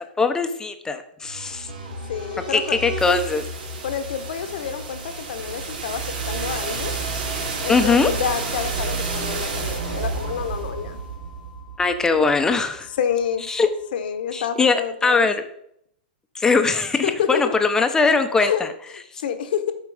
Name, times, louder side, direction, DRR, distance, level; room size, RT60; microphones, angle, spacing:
voice 1, 0.2-1.7 2.5-3.4 7.7-8.1 11.8-12.9 13.5-13.7 14.3-15.4 16.3-18.7, left 4 dB, 10° left, 7 dB, 0.9 m, -20 dB
sound 1, 1.2-13.1, right 3 dB, 75° right, 3.5 m, -30 dB
voice 2, 2.1-2.9 3.8-7.0 7.6-11.0 13.0-13.4 13.9-15.3 17.0-17.5 18.4-18.6 19.1-19.7, left 8 dB, 70° left, 8 dB, 1.2 m, -28 dB
8.3 x 5.0 x 5.0 m, 0.71 s
hypercardioid pair, 130°, 5 cm